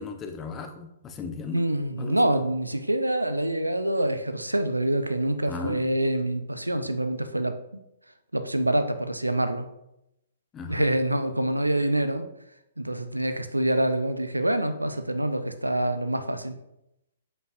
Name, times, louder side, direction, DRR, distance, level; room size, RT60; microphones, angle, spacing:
voice 1, 0.0-1.6 2.0-2.2 5.4-5.9 10.5-10.9, left 4 dB, 20° left, 5 dB, 0.7 m, -36 dB
voice 2, 1.5-7.6 8.3-9.7 10.7-12.3 12.8-16.6, right 1 dB, 85° right, 10 dB, 0.5 m, -26 dB
7.7 x 5.3 x 2.6 m, 0.84 s
figure-of-eight pair, 120°, 0 cm